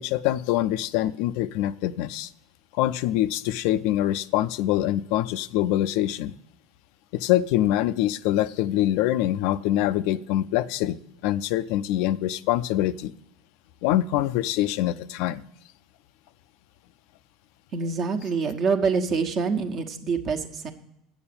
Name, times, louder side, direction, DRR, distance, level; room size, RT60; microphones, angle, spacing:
voice 1, 0.0-2.3 2.7-6.3 7.1-11.0 11.2-13.1 13.8-15.4, left 13 dB, 65° left, 14 dB, 0.4 m, -24 dB
voice 2, 17.7-20.7, right 5 dB, 50° right, 4 dB, 1.2 m, -26 dB
8.6 x 7.1 x 6.9 m, 0.82 s
hypercardioid pair, 80°, 0 cm